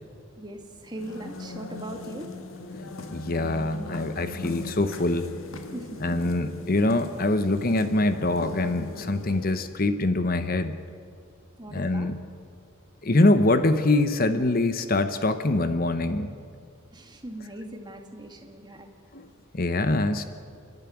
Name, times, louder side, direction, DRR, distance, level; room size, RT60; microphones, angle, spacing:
voice 1, 0.4-2.3 5.7-6.1 11.6-12.1 16.9-18.9, right 1 dB, 20° right, 4 dB, 1.9 m, -40 dB
sound 1, 0.8-9.7, left 2 dB, 70° left, 1.7 m, -40 dB
voice 2, 3.1-5.3 6.0-10.7 11.7-12.2 13.0-16.3 19.1-19.3 19.5-20.2, left 2 dB, 45° left, 10 dB, 0.9 m, -24 dB
30.0 x 11.0 x 10.0 m, 2.2 s
head